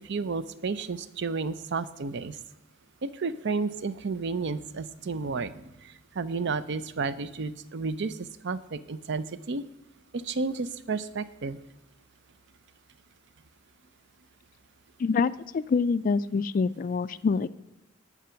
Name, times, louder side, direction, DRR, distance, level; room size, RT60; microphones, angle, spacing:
voice 1, 0.0-2.4 3.0-9.6 10.1-11.6, right 4 dB, 60° right, 15 dB, 0.5 m, -32 dB
voice 2, 15.0-17.5, left 5 dB, 45° left, 15 dB, 0.3 m, -26 dB
18.0 x 6.0 x 5.7 m, 0.92 s
head